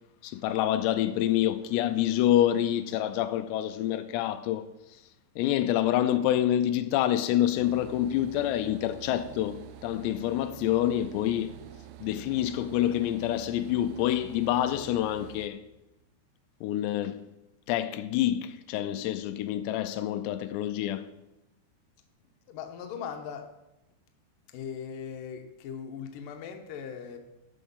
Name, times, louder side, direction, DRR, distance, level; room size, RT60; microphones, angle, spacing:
voice 1, 0.2-4.7 5.4-11.6 12.0-15.6 16.6-17.2 17.7-21.1, left 12 dB, 85° left, 2.7 m, -27 dB
sound 1, 7.6-15.5, right 11 dB, 85° right, 2.2 m, -47 dB
voice 2, 22.5-23.5 24.5-27.2, left 7 dB, 70° left, 2.3 m, -39 dB
12.5 x 6.8 x 5.5 m
omnidirectional pair, 4.9 m